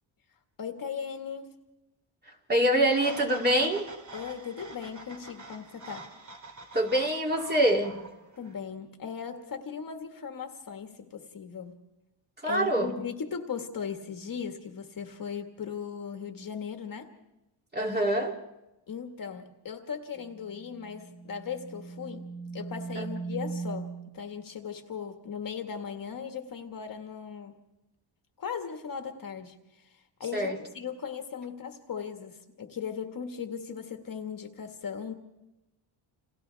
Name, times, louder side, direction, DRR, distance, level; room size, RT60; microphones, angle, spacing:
voice 1, 0.6-1.6 4.1-6.1 8.4-11.8 12.4-17.1 18.9-22.3 22.5-27.6 28.4-35.1, left 6 dB, 40° left, 4 dB, 1.8 m, -38 dB
voice 2, 2.5-3.8 6.7-8.0 12.4-12.9 17.7-18.4 23.0-23.1 30.3-30.6, right 1 dB, 20° right, 0 dB, 2.9 m, -25 dB
sound 1, 2.9-8.6, right 2 dB, 35° right, 2.9 m, -45 dB
sound 2, 20.2-24.1, right 4 dB, 70° right, 2.0 m, -39 dB
29.5 x 28.0 x 3.5 m, 0.99 s
cardioid pair, 130°, 49 cm